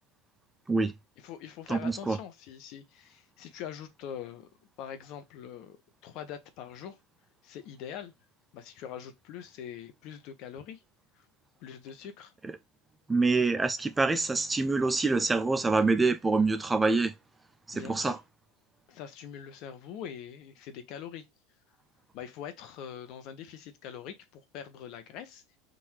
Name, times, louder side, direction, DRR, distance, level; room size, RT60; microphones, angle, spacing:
voice 1, 1.2-4.5 4.8-5.8 6.0-7.0 7.4-8.1 8.5-10.8 11.6-12.3 17.7-18.2 18.9-21.3 22.1-25.4, left 9 dB, 55° left, 0.9 m, -43 dB
voice 2, 1.7-2.2 12.4-12.5 13.1-17.1 17.7-18.2, right 3 dB, 10° right, 0.3 m, -26 dB
3.9 x 2.6 x 4.5 m
supercardioid pair, 125°, 0 cm